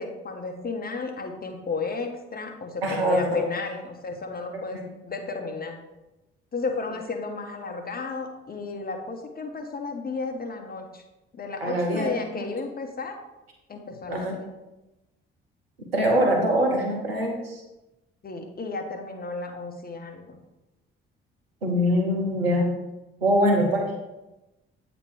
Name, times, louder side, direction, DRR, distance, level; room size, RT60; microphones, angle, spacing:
voice 1, 0.0-4.8 5.0-5.8 6.5-11.0 11.3-13.2 13.7-14.4 18.2-20.4, left 4 dB, 30° left, 4 dB, 1.1 m, -33 dB
voice 2, 2.8-3.2 4.5-4.8 11.6-12.5 14.1-14.4 15.9-17.6 21.6-22.7 23.2-23.9, equal, 85° right, 1 dB, 0.9 m, -23 dB
8.2 x 3.0 x 4.8 m, 1.0 s
figure-of-eight pair, 45°, 29 cm